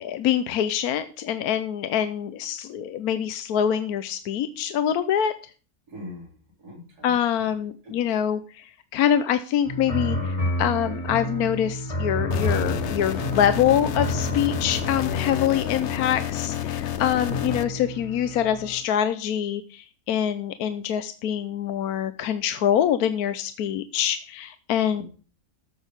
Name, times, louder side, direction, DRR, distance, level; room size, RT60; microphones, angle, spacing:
voice 1, 0.0-5.3 7.0-25.0, left 9 dB, 75° left, 11 dB, 1.2 m, -25 dB
voice 2, 5.9-7.5 7.8-8.3 24.9-25.0, left 1 dB, 80° right, -2 dB, 4.0 m, -43 dB
sound 1, 9.6-18.8, equal, 20° left, 1.9 m, -31 dB
sound 2, 12.3-17.6, left 10 dB, 60° left, 0.8 m, -29 dB
13.5 x 6.4 x 5.2 m, 0.38 s
omnidirectional pair, 1.6 m